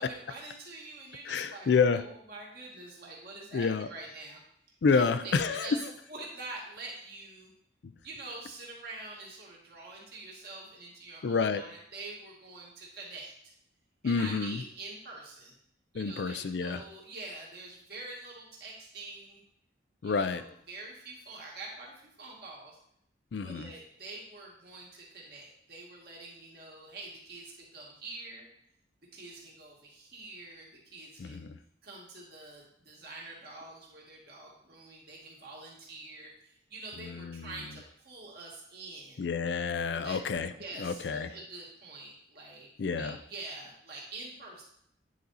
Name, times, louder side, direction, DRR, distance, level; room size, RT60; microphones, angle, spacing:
voice 1, 0.0-4.4 4.9-5.8 6.1-7.5 8.0-13.3 14.0-15.6 15.9-19.4 20.0-22.8 23.4-28.5 29.1-31.4 31.8-39.2 39.9-40.2 40.6-42.7 43.0-44.6, right 2 dB, 55° right, -3 dB, 2.0 m, -46 dB
voice 2, 1.3-2.0 3.5-3.9 4.8-5.7 7.8-7.9 11.2-11.6 14.0-14.6 15.9-16.8 20.0-20.4 23.3-23.7 31.2-31.6 37.0-37.5 39.2-40.5 40.8-41.3 42.8-43.2, left 5 dB, 60° left, 11 dB, 0.4 m, -29 dB
9.3 x 4.1 x 4.1 m, 0.71 s
head